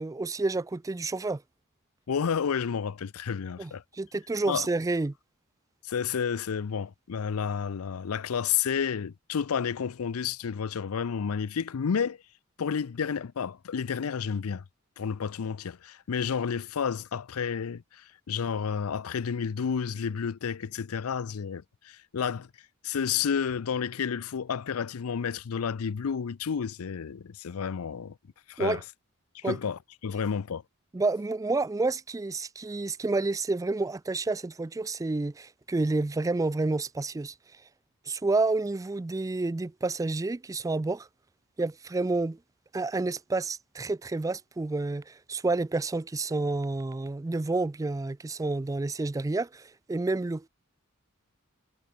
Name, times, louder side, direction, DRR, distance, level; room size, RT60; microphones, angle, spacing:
voice 1, 0.0-1.4 3.6-5.1 28.6-28.8 29.4-29.6 30.9-37.3 38.1-41.1 41.6-42.4 42.7-50.5, right 3 dB, 15° right, 0.3 m, -29 dB
voice 2, 2.1-3.8 4.5-4.7 5.8-12.2 12.6-14.6 15.0-22.5 22.8-28.1 28.5-28.8 29.3-30.6, left 7 dB, 90° left, 0.5 m, -31 dB
head